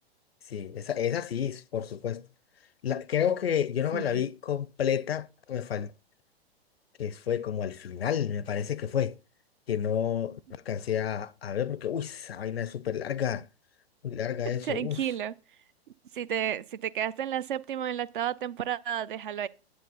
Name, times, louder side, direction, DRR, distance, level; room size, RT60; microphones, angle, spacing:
voice 1, 0.5-2.3 2.8-5.9 7.0-9.2 9.7-13.5 14.0-15.0, left 9 dB, 70° left, 0.6 m, -30 dB
voice 2, 3.9-4.2 14.6-15.3 16.1-19.5, right 10 dB, 55° right, 0.6 m, -32 dB
9.7 x 8.6 x 3.9 m
figure-of-eight pair, 105°, 31 cm